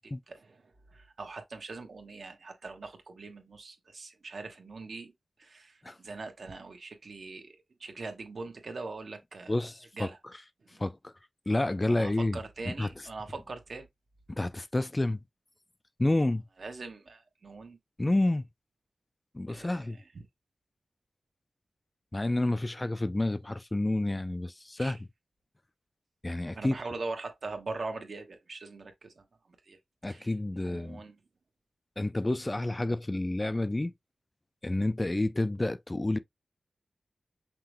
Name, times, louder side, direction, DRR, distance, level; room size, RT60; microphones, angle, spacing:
voice 1, 0.0-5.1 5.4-9.6 9.9-10.2 10.7-10.8 11.9-13.9 16.6-17.8 19.5-20.2 24.8-25.0 26.5-29.2 29.6-29.8 30.0-31.1, right 3 dB, 65° right, 1.2 m, -42 dB
voice 2, 9.5-10.1 10.8-11.1 11.5-12.4 12.7-12.9 14.4-15.2 16.0-16.4 18.0-18.4 19.3-20.0 22.1-25.0 26.2-26.8 30.0-31.0 32.0-33.9 34.6-36.2, left 2 dB, 25° left, 0.3 m, -29 dB
5.7 x 2.3 x 3.3 m
wide cardioid pair, 75°, 0 cm